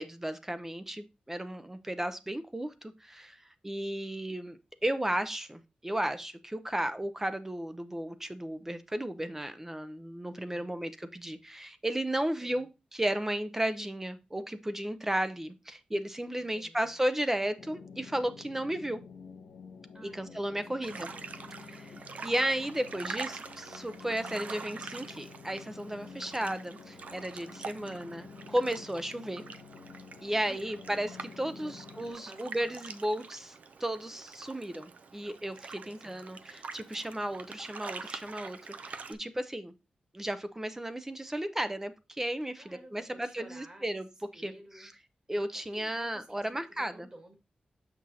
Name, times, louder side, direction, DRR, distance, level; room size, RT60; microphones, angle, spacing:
voice 1, 0.0-19.0 20.1-21.1 21.7-21.9 22.2-29.4 30.2-33.5 33.8-39.7 40.1-42.6 42.9-44.0 44.4-44.5 44.8-44.9 45.3-46.9, right 1 dB, 15° right, 0.6 m, -34 dB
voice 2, 10.3-10.8 12.4-12.7 16.3-17.0 19.9-21.3 30.4-30.7 31.4-31.8 32.1-32.8 35.8-36.2 42.6-44.9 45.7-47.3, right 1 dB, 30° right, 2.1 m, -54 dB
sound 1, 17.6-32.1, left 5 dB, 85° left, 0.9 m, -50 dB
sound 2, 20.8-39.1, right 4 dB, 65° right, 0.5 m, -45 dB
6.1 x 5.9 x 2.8 m
cardioid pair, 80°, 3 cm